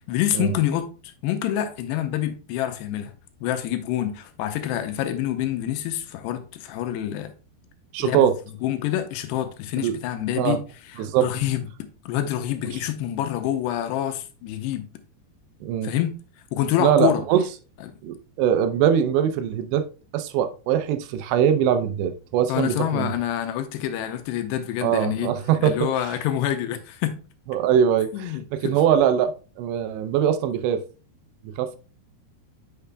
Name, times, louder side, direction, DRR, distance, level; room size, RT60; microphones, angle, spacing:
voice 1, 0.1-3.1 3.4-7.3 8.0-8.3 8.6-10.6 10.9-11.6 12.1-14.9 15.8-16.2 16.5-17.2 17.8-17.9 22.5-25.3 25.6-27.2 28.1-28.8, left 11 dB, 80° left, 2.7 m, -27 dB
voice 2, 7.9-8.3 9.8-9.9 10.4-10.6 11.0-11.3 15.6-15.9 16.8-17.4 18.0-19.9 20.1-23.1 24.8-25.9 27.5-30.8 31.6-31.8, right 9 dB, 85° right, 2.8 m, -22 dB
8.2 x 5.7 x 2.2 m
omnidirectional pair, 5.0 m